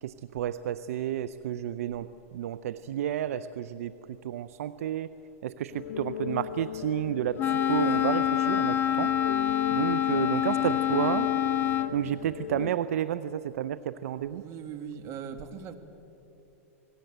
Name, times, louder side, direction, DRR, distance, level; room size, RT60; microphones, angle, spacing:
voice 1, 0.0-5.1 5.4-9.1 9.7-11.3 11.6-14.4, right 10 dB, 70° right, 15 dB, 0.7 m, -31 dB
sound 1, 5.7-12.7, left 9 dB, 75° left, 0.7 m, -37 dB
Wind instrument woodwind instrument, 7.4-12.0, left 10 dB, 25° left, 0.9 m, -26 dB
voice 2, 14.1-15.7, right 7 dB, 40° right, 8 dB, 2.0 m, -40 dB
27.0 x 19.0 x 8.0 m, 2.9 s
hypercardioid pair, 120°, 8 cm